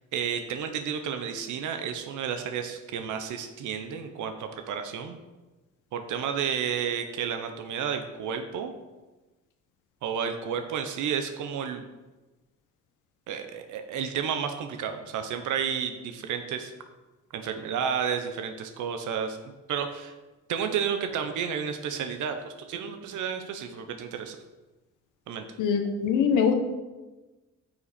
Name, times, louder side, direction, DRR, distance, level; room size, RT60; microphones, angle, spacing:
voice 1, 0.0-5.2 5.9-8.7 10.0-11.8 13.3-16.7 17.3-20.1 20.5-24.4 25.3-25.5, right 7 dB, 80° right, 7 dB, 0.8 m, -31 dB
voice 2, 25.6-26.5, left 6 dB, 85° left, 5 dB, 1.1 m, -23 dB
9.3 x 5.9 x 4.2 m, 1.2 s
cardioid pair, 90°, 30 cm